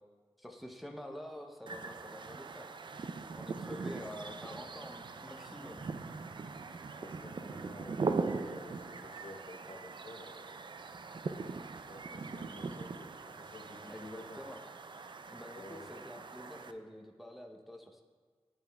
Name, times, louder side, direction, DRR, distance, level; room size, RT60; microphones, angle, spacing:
voice 1, 0.4-2.7 3.3-5.9 13.9-14.6 15.3-18.0, equal, ahead, 3 dB, 0.6 m, -47 dB
sound 1, 1.7-16.7, right 4 dB, 50° right, 0.4 m, -41 dB
voice 2, 6.8-10.7 11.7-14.4 15.5-15.9, left 2 dB, 65° left, -2 dB, 0.7 m, -52 dB
8.9 x 8.2 x 2.3 m, 1.5 s
wide cardioid pair, 70°, 10 cm